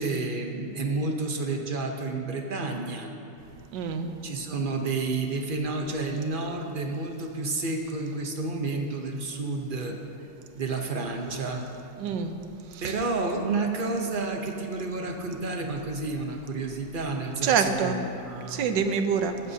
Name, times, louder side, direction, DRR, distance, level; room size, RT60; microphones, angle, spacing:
voice 1, 0.0-3.1 4.2-10.0 10.6-11.6 12.8-18.7, right 3 dB, 45° right, 2 dB, 0.6 m, -30 dB
voice 2, 3.7-4.2 12.0-12.4 12.8-12.9 17.4-18.0 18.5-19.5, right 6 dB, 75° right, 7 dB, 1.4 m, -26 dB
15.0 x 13.0 x 2.8 m, 2.7 s
omnidirectional pair, 2.0 m